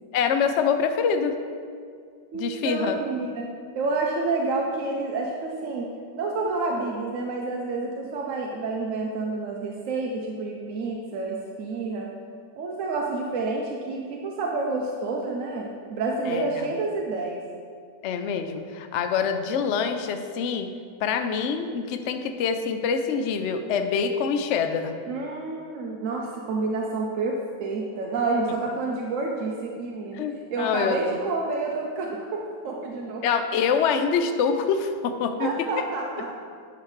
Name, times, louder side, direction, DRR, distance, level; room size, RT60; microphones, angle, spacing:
voice 1, 0.1-1.3 2.3-3.0 16.3-16.7 18.0-20.7 21.0-24.9 30.1-31.0 33.2-35.5, left 6 dB, 70° left, 7 dB, 0.6 m, -25 dB
voice 2, 2.3-3.5 3.7-12.1 12.6-17.4 25.1-30.2 30.5-33.2 35.4-36.3, right 3 dB, 60° right, -1 dB, 0.9 m, -29 dB
10.5 x 7.1 x 3.2 m, 2.1 s
omnidirectional pair, 1.9 m